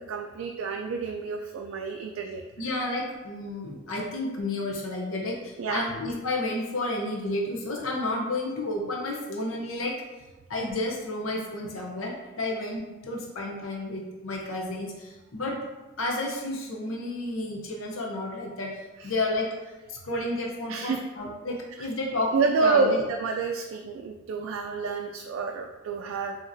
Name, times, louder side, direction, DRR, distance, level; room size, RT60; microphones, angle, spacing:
voice 1, 0.0-2.4 5.6-5.9 19.0-19.1 20.7-21.0 21.8-21.9 22.3-26.4, right 4 dB, 80° right, 3 dB, 0.3 m, -28 dB
voice 2, 2.6-10.0 10.5-15.6 16.0-19.5 19.9-23.0, left 2 dB, 90° left, -1 dB, 0.7 m, -31 dB
4.9 x 2.9 x 2.7 m, 1.2 s
head